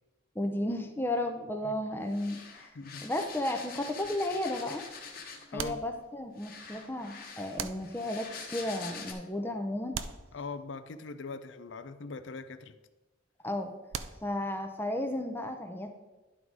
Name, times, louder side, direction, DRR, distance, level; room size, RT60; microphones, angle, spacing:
voice 1, 0.4-2.7 3.0-4.8 5.5-10.0 13.4-13.7 14.2-15.9, left 1 dB, 10° left, 5 dB, 0.5 m, -33 dB
sound 1, 2.1-5.6 6.4-9.1, left 5 dB, 50° left, 1.1 m, -45 dB
sound 2, 5.6-6.5 7.6-8.4 9.9-11.0 13.9-14.7, right 7 dB, 85° right, 0.5 m, -42 dB
voice 2, 10.3-12.7, left 4 dB, 70° left, 11 dB, 0.5 m, -41 dB
11.0 x 3.9 x 4.7 m, 1.1 s
head